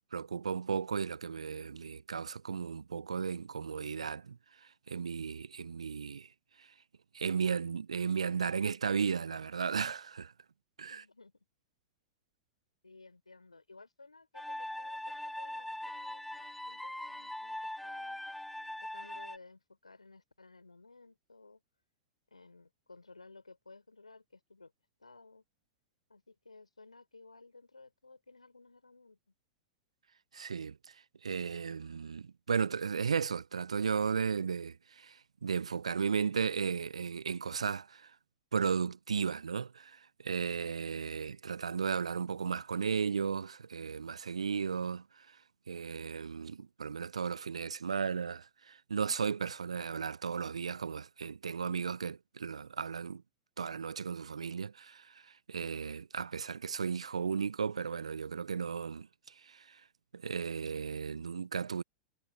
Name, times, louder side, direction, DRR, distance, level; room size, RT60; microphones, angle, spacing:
voice 1, 0.1-6.3 6.6-6.7 7.1-10.3 10.8-11.0 30.3-31.0 31.2-38.1 38.5-45.4 45.7-53.2 53.6-59.8 60.1-61.8, right 6 dB, 80° right, 0.5 m, -35 dB
voice 2, 10.9-11.4 12.8-18.2 18.8-21.6 22.3-24.7 25.0-25.4 26.1-29.2, left 3 dB, 85° left, 4.1 m, -57 dB
sound 1, 14.3-19.4, left 1 dB, 5° left, 0.7 m, -41 dB
figure-of-eight pair, 95°, 3 cm